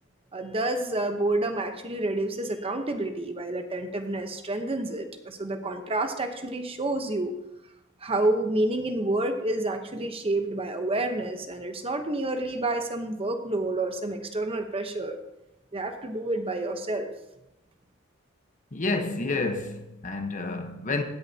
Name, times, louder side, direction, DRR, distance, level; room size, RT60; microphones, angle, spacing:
voice 1, 0.3-7.4 8.0-15.2 15.7-17.1, right 2 dB, 30° right, 0.9 m, -29 dB
voice 2, 18.7-21.0, left 3 dB, 40° left, 1.0 m, -29 dB
17.0 x 10.5 x 2.8 m
head